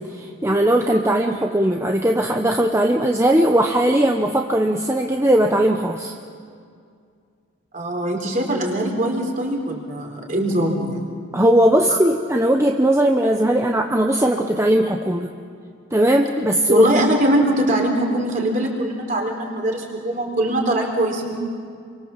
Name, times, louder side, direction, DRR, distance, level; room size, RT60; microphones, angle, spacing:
voice 1, 0.0-6.1 11.3-15.3 15.9-17.0, right 1 dB, 15° right, 2 dB, 0.9 m, -18 dB
voice 2, 7.7-11.1 11.9-12.0 16.7-21.4, right 1 dB, 40° right, 1 dB, 4.1 m, -22 dB
28.5 x 24.0 x 7.4 m, 2.2 s
head